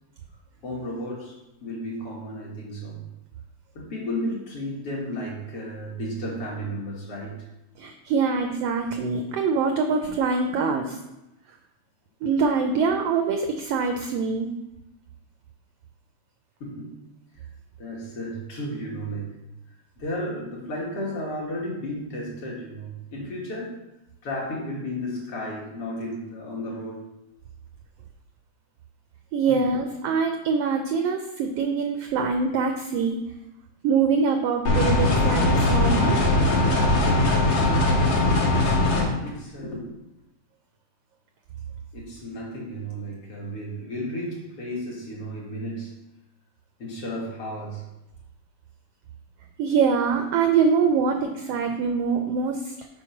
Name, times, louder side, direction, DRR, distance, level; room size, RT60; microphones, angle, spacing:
voice 1, 0.6-3.0 3.7-7.4 16.6-17.0 17.8-19.3 20.0-23.8 24.2-27.1 29.5-29.7 39.2-39.9 41.9-45.9 46.8-47.8, equal, 55° left, -3 dB, 2.3 m, -33 dB
voice 2, 7.8-11.0 12.2-14.5 29.3-33.2 33.8-36.2 49.6-52.6, right 5 dB, 80° right, 5 dB, 1.4 m, -24 dB
sound 1, 34.7-39.0, left 2 dB, 85° left, 2.8 m, -20 dB
6.2 x 4.6 x 5.7 m, 0.92 s
omnidirectional pair, 3.3 m